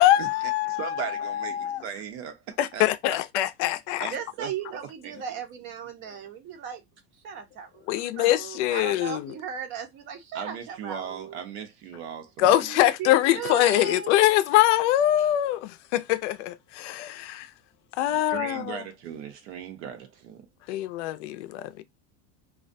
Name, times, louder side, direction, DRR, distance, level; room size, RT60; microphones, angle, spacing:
voice 1, 0.0-1.8 2.6-4.1 7.9-9.3 12.4-17.5 18.0-18.8 20.7-21.8, left 14 dB, 80° left, 0.5 m, -23 dB
voice 2, 0.7-1.6 1.8-2.9 4.0-4.5 5.0-5.2 10.3-12.6 18.1-20.5, right 8 dB, 70° right, 0.8 m, -37 dB
voice 3, 4.1-6.8 7.1-11.4 12.6-14.1, right 7 dB, 35° right, 0.6 m, -37 dB
2.4 x 2.2 x 2.5 m
cardioid pair, 170°, 35 cm